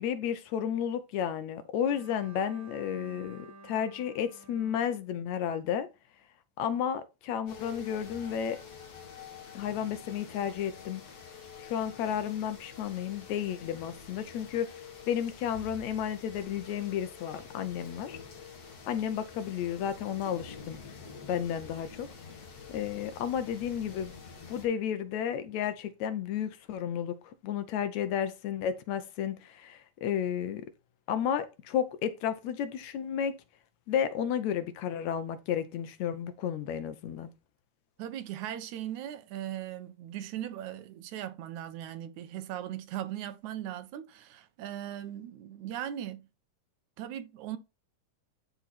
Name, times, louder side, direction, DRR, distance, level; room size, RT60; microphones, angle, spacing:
voice 1, 0.0-5.9 6.6-8.6 9.5-11.0 11.6-14.7 15.1-18.2 18.9-20.8 21.3-22.1 22.7-24.1 24.5-30.7 31.1-33.4 33.9-37.3, left 9 dB, 75° left, 2.0 m, -32 dB
Bowed string instrument, 1.8-5.9, right 2 dB, 50° right, 1.7 m, -53 dB
sound 1, 7.5-24.7, left 5 dB, 55° left, 3.3 m, -47 dB
voice 2, 38.0-46.2 47.0-47.6, right 11 dB, 75° right, 2.1 m, -39 dB
12.0 x 4.1 x 4.1 m
omnidirectional pair, 3.5 m